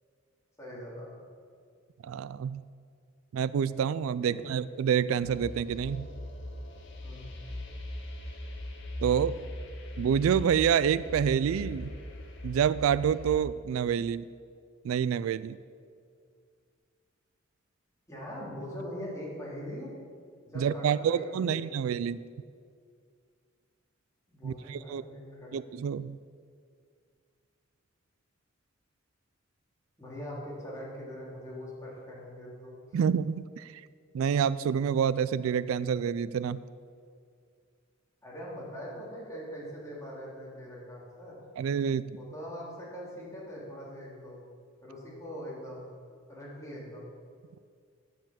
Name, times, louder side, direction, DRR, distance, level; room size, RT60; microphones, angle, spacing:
voice 1, 0.6-1.1 4.2-4.5 7.0-7.3 18.1-19.9 20.5-21.8 24.3-25.6 30.0-32.7 38.2-41.4 42.1-44.4 44.8-45.9 46.3-47.1, equal, 15° left, -6 dB, 3.1 m, -42 dB
voice 2, 2.0-2.6 3.3-6.1 9.0-9.3 10.0-11.9 12.4-14.3 14.8-15.6 20.6-22.2 24.4-25.0 25.5-26.2 32.9-33.8 34.1-36.6 41.6-42.2, right 8 dB, 85° right, 16 dB, 0.3 m, -28 dB
sound 1, 5.2-13.4, left 1 dB, 60° left, 1.7 m, -40 dB
9.6 x 7.6 x 7.3 m, 2.2 s
head